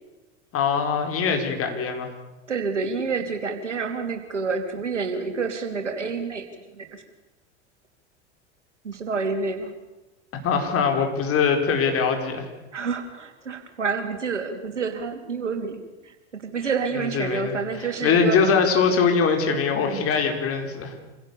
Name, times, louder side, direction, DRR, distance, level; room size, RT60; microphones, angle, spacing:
voice 1, 0.5-2.1 10.4-12.5 16.9-21.0, left 5 dB, 40° left, 5 dB, 4.7 m, -22 dB
voice 2, 2.5-6.5 6.7-6.9 8.8-9.7 12.7-18.4, right 5 dB, 85° right, 6 dB, 3.0 m, -28 dB
27.0 x 16.5 x 7.0 m, 1.1 s
hypercardioid pair, 80°, 35 cm